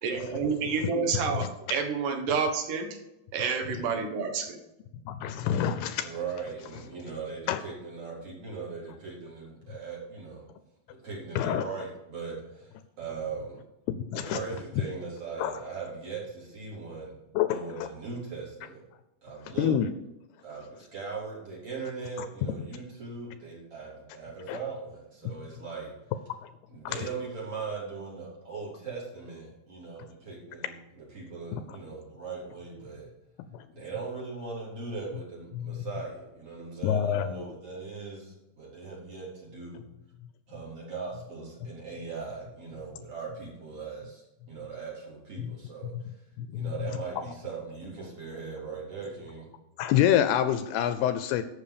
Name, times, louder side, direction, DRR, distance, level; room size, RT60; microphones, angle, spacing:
voice 1, 0.0-3.0 3.3-4.6, right 5 dB, 65° right, 5 dB, 2.6 m, -29 dB
voice 2, 5.1-6.1 7.5-7.6 11.4-11.7 13.9-14.4 15.4-15.5 17.4-17.9 19.6-19.9 24.5-24.6 25.2-25.3 26.9-27.0 31.5-31.6 33.5-33.6 35.5-35.8 36.8-37.5 45.4-45.5 46.4-46.7 49.8-51.4, left 10 dB, 80° left, 11 dB, 2.5 m, -27 dB
voice 3, 6.0-10.4 11.0-13.6 14.1-17.2 17.5-18.8 19.2-19.7 20.4-25.9 26.7-33.1 33.7-39.8 40.5-46.1 46.5-49.5, right 4 dB, 35° right, -5 dB, 4.6 m, -39 dB
12.0 x 7.7 x 5.0 m, 0.92 s
omnidirectional pair, 4.8 m